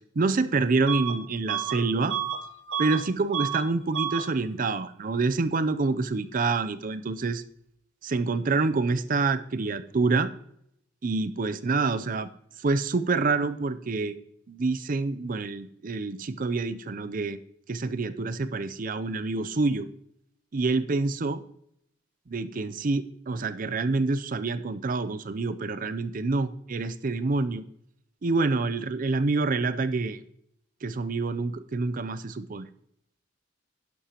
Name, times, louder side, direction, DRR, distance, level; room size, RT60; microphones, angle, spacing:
voice 1, 0.2-2.2 2.8-7.4 8.0-10.3 11.0-12.3 12.6-14.2 14.5-17.4 17.7-19.9 20.5-21.4 22.3-27.6 28.2-30.2 30.8-32.7, right 3 dB, 45° right, 12 dB, 0.5 m, -27 dB
Bus / Alarm, 0.9-1.2 1.5-3.0 3.3-3.7 3.9-4.3, right 9 dB, 75° right, 0.9 m, -30 dB
11.5 x 11.0 x 2.9 m, 0.73 s
head